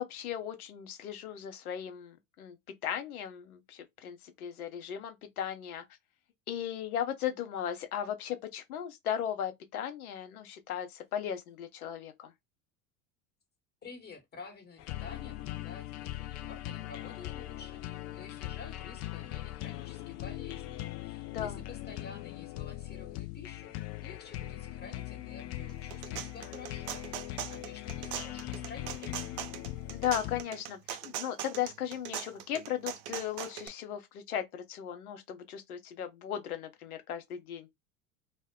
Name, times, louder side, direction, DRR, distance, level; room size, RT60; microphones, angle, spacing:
voice 1, 0.0-2.6 2.8-5.8 6.5-12.3 21.3-21.6 29.9-37.7, left 10 dB, 80° left, 0.8 m, -36 dB
voice 2, 13.8-29.3, left 4 dB, 20° left, 1.1 m, -50 dB
sound 1, 14.8-30.4, left 15 dB, 40° left, 0.4 m, -40 dB
sound 2, 25.7-33.7, right 11 dB, 45° right, 0.5 m, -40 dB
2.1 x 2.1 x 3.5 m
hypercardioid pair, 85°, 43 cm